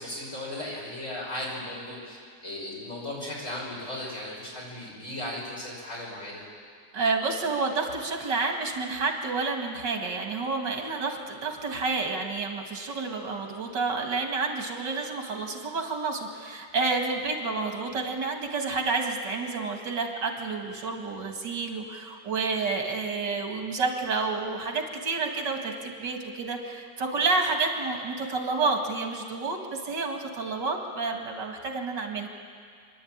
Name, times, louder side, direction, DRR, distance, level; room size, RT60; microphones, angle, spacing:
voice 1, 0.0-2.2 2.4-6.4, left 1 dB, 45° left, -4 dB, 6.3 m, -36 dB
voice 2, 6.9-32.3, right 4 dB, 80° right, 3 dB, 2.7 m, -29 dB
28.5 x 11.5 x 8.8 m, 2.2 s
omnidirectional pair, 1.9 m